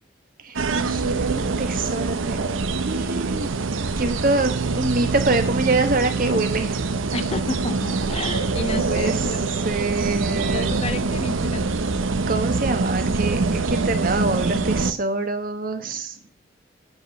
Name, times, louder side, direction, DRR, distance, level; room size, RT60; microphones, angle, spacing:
voice 1, 0.4-2.5 2.8-3.5 4.0-7.0 8.9-9.3 9.6-10.8 12.3-16.1, right 3 dB, 45° right, 8 dB, 1.2 m, -25 dB
sound 1, 0.6-14.9, right 3 dB, 85° right, 0.8 m, -24 dB
voice 2, 7.1-9.5 10.5-11.7, left 3 dB, 30° left, 12 dB, 0.5 m, -31 dB
8.7 x 5.0 x 6.6 m, 0.40 s
head